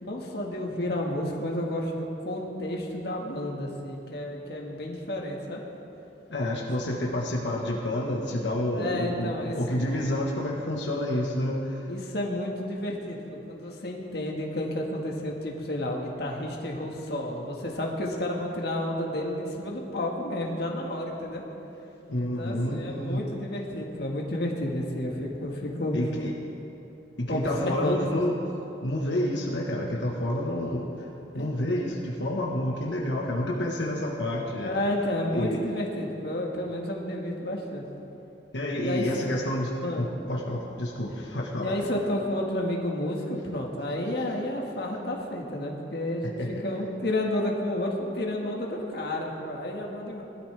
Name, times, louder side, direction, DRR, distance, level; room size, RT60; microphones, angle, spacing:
voice 1, 0.0-5.6 8.7-9.8 11.9-21.4 22.2-26.0 27.3-28.0 31.3-31.5 34.6-37.8 38.7-39.1 39.8-40.1 41.6-50.2, left 1 dB, 60° left, -1 dB, 1.7 m, -31 dB
voice 2, 6.3-11.9 22.1-23.2 25.9-26.3 27.2-28.3 28.8-31.1 31.3-34.7 35.3-35.6 38.5-41.7 46.4-46.5, left 1 dB, 85° left, -2 dB, 1.4 m, -29 dB
19.5 x 12.5 x 3.4 m, 3.0 s
head